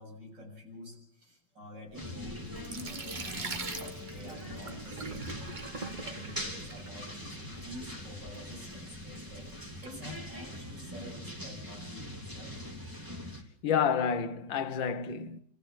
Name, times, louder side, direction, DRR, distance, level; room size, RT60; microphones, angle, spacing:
voice 1, 0.0-5.4 5.7-12.5, left 1 dB, 65° right, 8.2 m, -48 dB
sound 1, 1.9-13.4, left 1 dB, 10° right, 3.2 m, -42 dB
Sink (filling or washing), 1.9-10.7, right 4 dB, 30° right, 1.0 m, -44 dB
voice 2, 13.6-15.4, left 7 dB, 85° left, 1.9 m, -29 dB
26.5 x 15.0 x 7.6 m
omnidirectional pair, 2.0 m